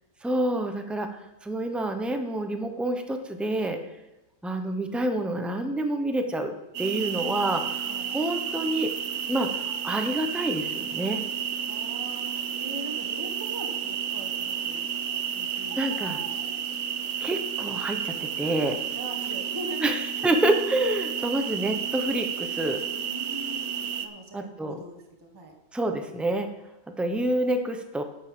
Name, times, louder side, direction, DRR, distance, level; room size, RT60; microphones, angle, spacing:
voice 1, 0.2-1.1 1.4-3.8 4.4-6.5 6.8-8.9 9.3-11.3 15.8-16.2 17.2-18.8 19.8-19.9 20.2-22.8 24.3-24.8 25.7-26.5 27.0-28.0, right 1 dB, ahead, 6 dB, 0.6 m, -27 dB
sound 1, 6.7-24.1, right 8 dB, 85° right, 1.3 m, -31 dB
voice 2, 6.8-7.5 7.8-8.2 11.6-14.9 15.3-16.5 18.9-19.9 20.2-20.3 22.9-25.5, right 1 dB, 15° right, 0 dB, 1.4 m, -42 dB
9.1 x 6.7 x 7.5 m, 0.99 s
omnidirectional pair, 1.5 m